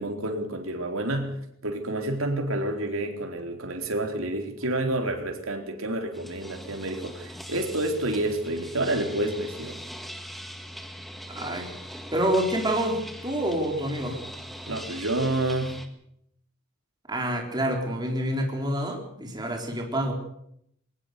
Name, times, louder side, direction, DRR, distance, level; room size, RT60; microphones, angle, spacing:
voice 1, 0.0-1.4 1.6-9.8 14.7-15.8, right 1 dB, 80° right, 3 dB, 4.1 m, -29 dB
sound 1, 6.1-15.9, equal, ahead, 1.9 m, -41 dB
voice 2, 11.3-11.7 12.1-14.2 17.1-20.1, right 1 dB, 20° right, 2 dB, 4.1 m, -27 dB
22.0 x 19.5 x 6.8 m, 0.71 s
head